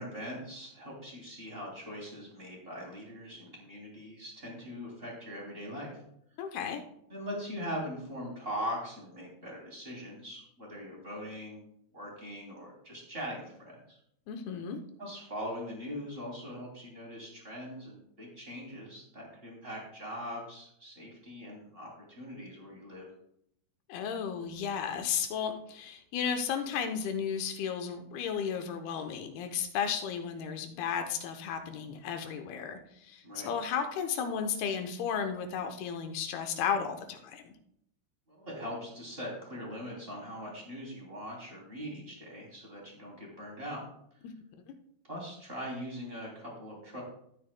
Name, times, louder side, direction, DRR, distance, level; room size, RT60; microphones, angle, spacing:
voice 1, 0.0-6.0 7.1-11.6 11.9-14.0 15.0-23.1 33.2-33.5 38.3-43.8 45.0-47.0, equal, 15° right, -3 dB, 2.5 m, -41 dB
voice 2, 6.4-6.8 14.3-14.8 23.9-37.5 44.7-44.8, left 7 dB, 75° left, 6 dB, 2.7 m, -34 dB
14.0 x 9.2 x 2.2 m, 0.72 s
omnidirectional pair, 4.7 m